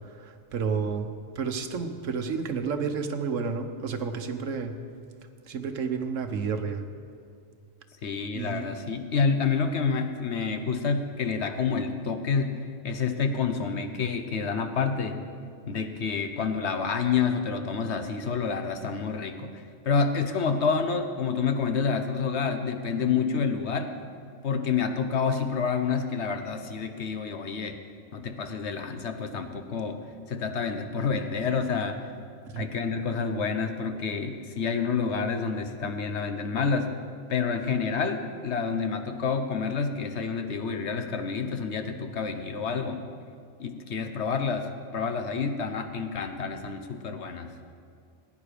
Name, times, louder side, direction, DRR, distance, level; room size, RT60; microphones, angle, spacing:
voice 1, 0.2-1.1 1.3-4.7 5.5-6.8 8.3-8.7 28.2-28.5 32.5-32.6, right 5 dB, 80° right, 7 dB, 1.3 m, -31 dB
voice 2, 8.0-12.5 12.8-15.2 15.7-23.9 24.4-27.8 28.1-30.0 30.3-32.0 32.6-36.9 37.3-43.1 43.6-47.5, left 5 dB, 60° left, 7 dB, 1.1 m, -28 dB
17.5 x 9.8 x 5.1 m, 2.3 s
omnidirectional pair, 1.3 m